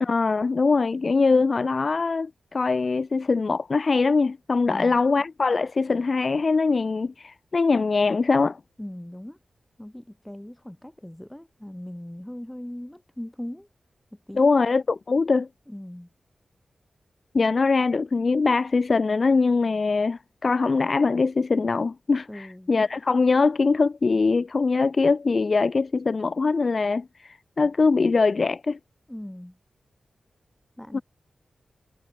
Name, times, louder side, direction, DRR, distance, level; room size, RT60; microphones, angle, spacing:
voice 1, 0.0-8.6 14.4-15.5 17.3-28.8 30.9-31.0, left 4 dB, 55° left, 0.7 m, -22 dB
voice 2, 4.7-5.0 8.8-9.4 9.8-13.7 14.1-14.5 15.7-16.1 22.3-22.7 29.1-29.6 30.8-31.0, left 1 dB, 10° left, 4.2 m, -39 dB
cardioid pair, 50°, 0 cm